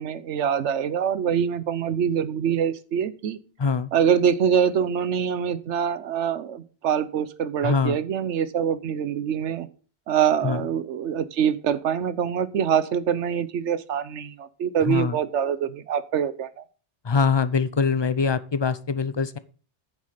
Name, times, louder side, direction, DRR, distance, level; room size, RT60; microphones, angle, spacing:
voice 1, 0.0-3.4 3.9-9.7 10.1-16.6, right 8 dB, 80° right, 15 dB, 1.1 m, -24 dB
voice 2, 7.6-8.0 10.4-10.6 14.9-15.2 17.0-19.4, left 5 dB, 40° left, 15 dB, 0.4 m, -23 dB
9.7 x 7.4 x 5.0 m, 0.38 s
omnidirectional pair, 1.2 m